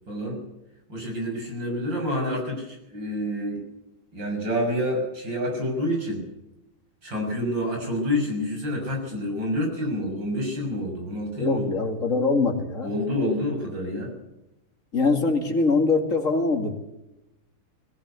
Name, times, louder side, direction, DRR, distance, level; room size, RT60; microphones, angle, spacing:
voice 1, 0.1-0.4 0.9-3.6 4.1-6.3 7.0-11.7 12.8-14.1, left 1 dB, 60° right, 1 dB, 7.3 m, -28 dB
voice 2, 11.4-12.9 14.9-16.7, left 3 dB, 40° left, 4 dB, 2.8 m, -23 dB
21.0 x 15.0 x 8.3 m, 0.93 s
omnidirectional pair, 2.2 m